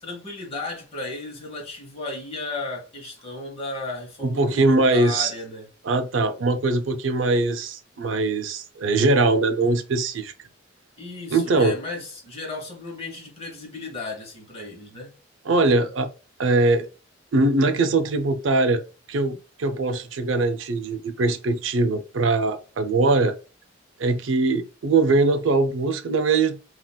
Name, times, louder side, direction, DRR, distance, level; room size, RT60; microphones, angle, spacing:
voice 1, 0.0-5.7 11.0-15.1, left 2 dB, 30° left, 1.0 m, -35 dB
voice 2, 4.2-5.3 5.8-10.3 11.3-11.8 15.4-16.1 16.4-16.9 17.3-18.8 19.1-23.4 24.0-26.6, right 3 dB, 80° right, 0.5 m, -21 dB
3.8 x 2.4 x 2.2 m
head